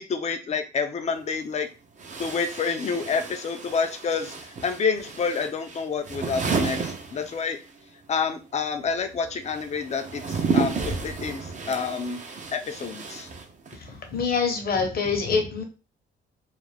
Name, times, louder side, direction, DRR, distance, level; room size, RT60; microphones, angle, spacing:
voice 1, 0.0-1.7 2.2-7.6 8.1-12.2 12.5-13.3, left 5 dB, 35° left, 7 dB, 0.5 m, -28 dB
sound 1, 1.1-1.2 2.0-7.8 8.0-13.9, right 4 dB, 40° right, 0.6 m, -32 dB
voice 2, 13.8-15.6, left 5 dB, 50° left, 4 dB, 0.8 m, -25 dB
2.4 x 2.1 x 3.2 m, 0.32 s
cardioid pair, 90°, 20 cm